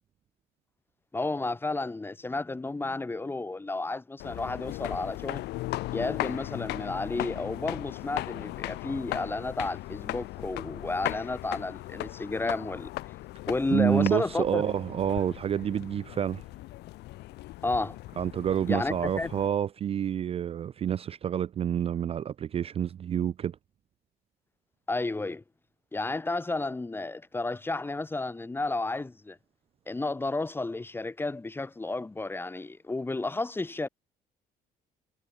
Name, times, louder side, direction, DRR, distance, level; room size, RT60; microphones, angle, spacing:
voice 1, 1.1-5.4 5.9-12.9 13.5-14.6 17.6-18.0 18.7-19.3 24.9-25.4 25.9-29.4 29.9-33.9, left 2 dB, 15° left, 0.9 m, -32 dB
sound 1, 4.2-19.5, left 18 dB, 80° left, 1.0 m, -37 dB
voice 2, 13.7-16.4 18.2-23.6, right 9 dB, 35° right, 0.4 m, -28 dB
cardioid pair, 110°, 17 cm